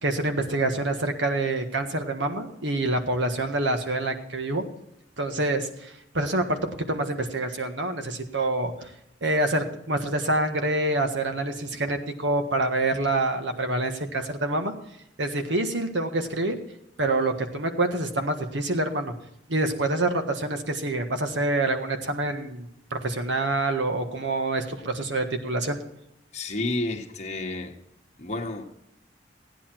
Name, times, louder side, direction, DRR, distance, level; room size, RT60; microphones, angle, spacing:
voice 1, 0.0-4.6 5.2-8.9 9.2-14.7 15.2-16.6 17.0-19.1 19.5-25.8, right 2 dB, 85° right, 5 dB, 1.6 m, -26 dB
voice 2, 26.3-27.7 28.2-28.8, left 2 dB, 40° left, 3 dB, 1.4 m, -31 dB
16.0 x 9.8 x 4.5 m, 0.80 s
head